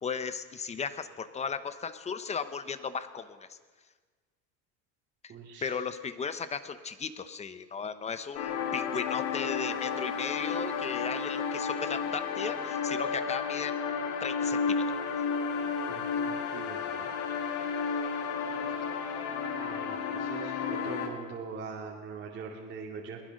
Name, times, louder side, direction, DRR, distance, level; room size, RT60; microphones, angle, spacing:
voice 1, 0.0-3.6 5.6-13.8 14.2-15.0, left 6 dB, 15° left, 12 dB, 0.9 m, -36 dB
voice 2, 5.3-5.8 15.9-17.1 18.7-18.8 19.6-23.2, right 5 dB, 30° right, -2 dB, 2.6 m, -43 dB
sound 1, 8.4-21.1, left 6 dB, 75° left, 3.2 m, -32 dB
22.5 x 19.5 x 6.5 m, 1.4 s
cardioid pair, 155°, 38 cm